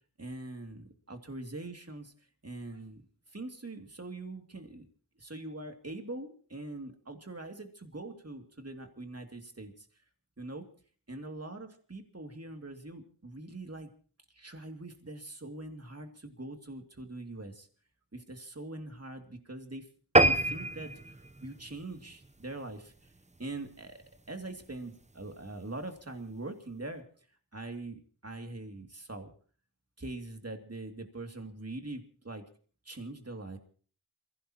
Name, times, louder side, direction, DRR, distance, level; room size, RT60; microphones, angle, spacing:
voice 1, 0.2-2.1 2.4-3.0 3.3-4.8 5.2-9.9 10.4-10.7 11.1-13.9 14.3-17.7 18.1-19.9 20.2-23.1 23.4-27.0 27.5-29.3 30.0-32.4 32.8-33.6, right 2 dB, 35° right, 5 dB, 2.5 m, -43 dB
sound 1, 20.2-22.9 23.4-23.6 24.0-24.1 24.4-24.5 24.8-24.9, right 2 dB, 15° right, 0.7 m, -27 dB
27.5 x 16.5 x 3.0 m, 0.43 s
wide cardioid pair, 55°, 40 cm